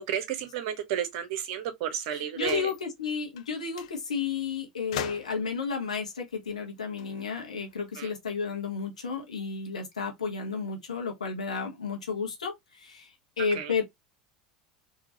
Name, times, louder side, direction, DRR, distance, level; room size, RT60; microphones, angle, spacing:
voice 1, 0.1-2.7 8.0-8.1 13.5-13.8, right 9 dB, 60° right, 1.0 m, -32 dB
voice 2, 2.1-13.1 13.4-13.8, left 5 dB, 85° left, 1.2 m, -32 dB
sound 1, 2.4-2.8 3.4-3.5 3.7-3.9 4.9-5.5 6.8-7.9, left 12 dB, 70° left, 0.5 m, -40 dB
3.7 x 2.9 x 2.9 m
hypercardioid pair, 80°, 4 cm